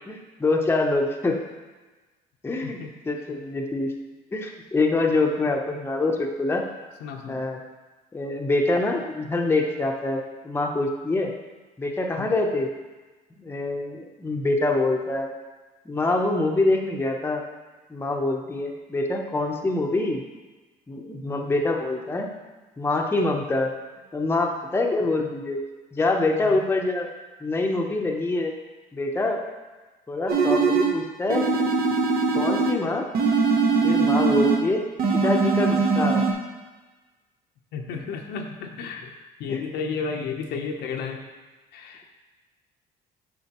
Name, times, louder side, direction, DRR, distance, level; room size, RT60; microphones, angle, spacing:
voice 1, 0.1-1.4 2.4-2.8 3.0-3.9 4.3-6.6 7.3-7.6 8.1-11.3 11.8-12.7 13.4-15.3 15.9-17.4 17.9-20.2 20.9-22.3 22.8-23.7 24.1-25.6 25.9-27.1 27.4-28.5 28.9-29.4 30.1-31.4 32.3-33.0 33.8-34.8 35.1-36.2 37.9-38.0 39.5-39.7, left 2 dB, 15° left, 1 dB, 0.7 m, -25 dB
voice 2, 7.0-7.4 12.2-12.3 21.3-21.5 26.4-26.6 37.7-39.1 39.4-41.2 41.7-42.1, left 5 dB, 80° left, 2 dB, 0.8 m, -32 dB
sound 1, 30.3-31.0 31.3-32.8 33.1-34.7 35.0-36.3, right 4 dB, 65° right, 1.0 m, -21 dB
7.8 x 5.0 x 3.0 m, 1.2 s
cardioid pair, 110°, 17 cm